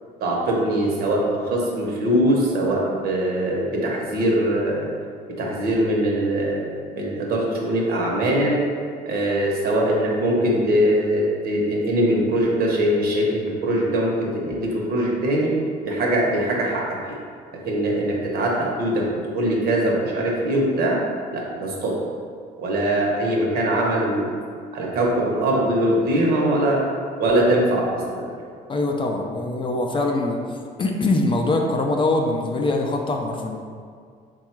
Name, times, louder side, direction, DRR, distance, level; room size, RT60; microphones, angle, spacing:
voice 1, 0.2-4.9 5.4-8.6 9.0-15.5 15.8-16.8 17.6-19.0 19.3-21.0 21.3-21.9 22.6-24.3 24.7-26.8 27.2-28.2, right 1 dB, 65° right, -2 dB, 0.9 m, -22 dB
voice 2, 28.7-30.4 30.8-33.6, left 2 dB, 30° left, 2 dB, 0.4 m, -23 dB
3.6 x 2.3 x 4.4 m, 2.1 s
cardioid pair, 110°, 17 cm